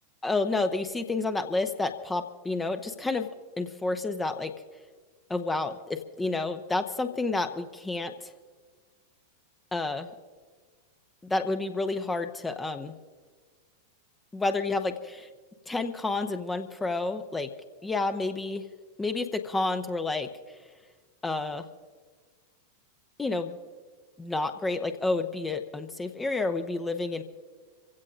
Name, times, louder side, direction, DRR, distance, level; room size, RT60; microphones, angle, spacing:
voice 1, 0.2-3.3 3.6-4.5 5.3-8.1 9.7-10.1 11.2-13.0 14.3-15.3 15.7-17.5 17.8-18.6 19.0-20.3 21.2-21.7 23.2-23.5 24.2-27.2, left 3 dB, 10° left, 7 dB, 0.9 m, -30 dB
27.5 x 16.0 x 2.6 m, 1.5 s
figure-of-eight pair, 90°, 0 cm